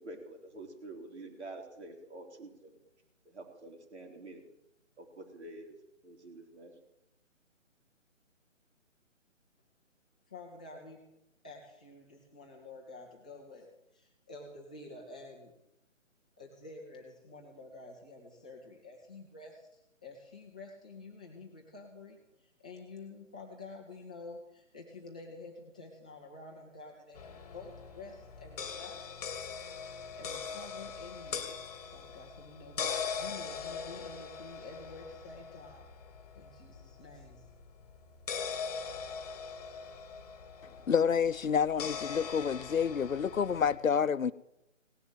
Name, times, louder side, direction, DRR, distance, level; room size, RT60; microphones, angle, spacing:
voice 1, 0.0-2.8 3.3-4.4 5.0-5.8 6.0-6.7, right 2 dB, 55° right, 3 dB, 3.7 m, -47 dB
voice 2, 10.3-11.0 11.4-13.7 13.9-15.5 16.4-29.2 30.1-31.5 31.9-35.8 36.3-37.5, left 3 dB, 5° left, -3 dB, 0.6 m, -49 dB
sound 1, 27.1-43.8, left 6 dB, 30° left, 1.5 m, -41 dB
voice 3, 40.9-44.3, left 7 dB, 85° left, 17 dB, 0.8 m, -28 dB
17.5 x 6.9 x 9.2 m, 0.87 s
figure-of-eight pair, 155°, 39 cm